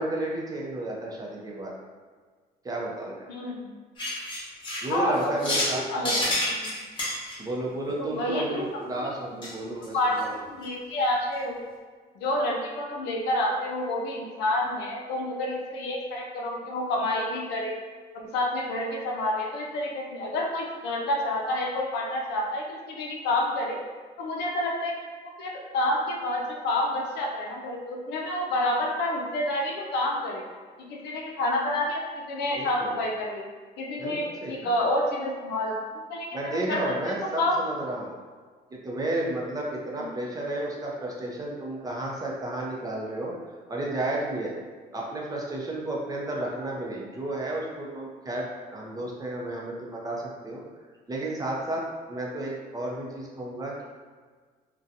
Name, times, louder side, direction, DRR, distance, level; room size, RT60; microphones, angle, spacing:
voice 1, 0.0-1.7 2.6-3.3 4.8-6.3 7.4-10.3 32.5-33.0 34.0-34.7 36.3-38.1 38.7-43.3 43.7-44.5 44.9-50.6 51.1-51.8 52.1-53.8, right 1 dB, 20° right, -3 dB, 0.5 m, -32 dB
voice 2, 3.3-3.7 4.9-6.2 6.4-6.9 8.0-8.7 9.0-11.6 12.2-17.8 18.1-23.8 24.2-25.1 25.4-30.4 30.8-32.0 32.3-33.4 33.8-35.8 36.1-36.9 37.4-37.6 40.0-40.2, left 1 dB, 80° left, 0 dB, 0.5 m, -29 dB
sound 1, 4.0-5.8 6.1-7.3 9.4-9.5 9.8-9.9 10.2-10.3 10.6-10.7, left 1 dB, 30° left, 1.0 m, -28 dB
2.6 x 2.2 x 2.5 m, 1.5 s
cardioid pair, 110°, 17 cm